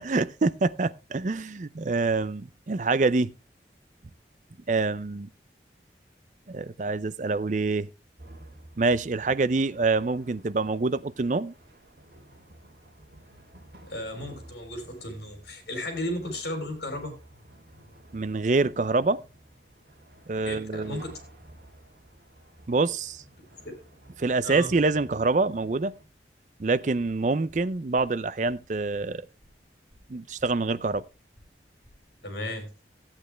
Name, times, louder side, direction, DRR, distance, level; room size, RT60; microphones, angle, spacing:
voice 1, 0.0-3.3 4.7-5.3 6.5-7.9 8.8-11.5 18.1-19.2 20.3-21.0 22.7-23.2 24.2-25.9 26.6-29.3 30.1-31.0, right 3 dB, 45° right, 0.5 m, -26 dB
sound 1, 8.2-26.1, right 1 dB, 65° right, 2.4 m, -52 dB
voice 2, 13.8-17.1 20.4-21.1 23.6-23.8 24.4-24.7 32.2-32.7, left 1 dB, 70° left, 3.6 m, -34 dB
sound 2, 27.5-32.1, equal, 10° left, 4.7 m, -58 dB
15.0 x 8.8 x 3.3 m
head